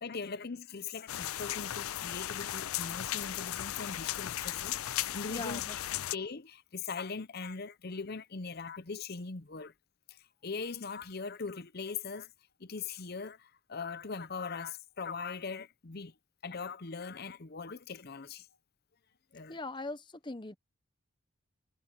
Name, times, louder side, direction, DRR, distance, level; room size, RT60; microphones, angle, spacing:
voice 1, 0.0-5.6 6.1-9.7 10.1-12.3 12.6-16.1 16.4-18.5 19.3-19.6, left 5 dB, 45° left, 0.7 m, -41 dB
sound 1, 1.1-6.2, left 13 dB, 80° left, 0.4 m, -36 dB
voice 2, 5.3-5.8 19.5-20.6, left 2 dB, 20° left, 0.9 m, -40 dB
head